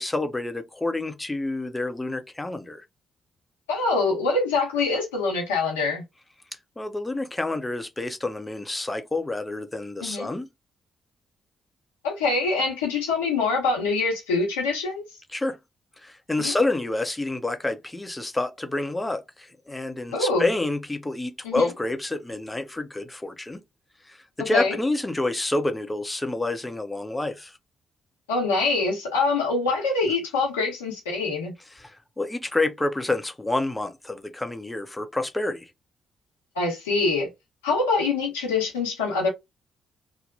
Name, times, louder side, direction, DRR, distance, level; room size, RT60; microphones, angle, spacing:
voice 1, 0.0-2.9 6.8-10.5 15.3-15.6 16.0-23.6 24.0-27.6 31.7-35.7, left 2 dB, 15° left, 0.7 m, -28 dB
voice 2, 3.7-6.0 10.0-10.3 12.0-15.0 16.4-16.6 20.1-20.5 21.4-21.7 24.5-24.7 28.3-31.5 36.5-37.3 37.6-39.3, left 3 dB, 90° left, 1.0 m, -24 dB
2.9 x 2.1 x 2.5 m
hypercardioid pair, 45°, 0 cm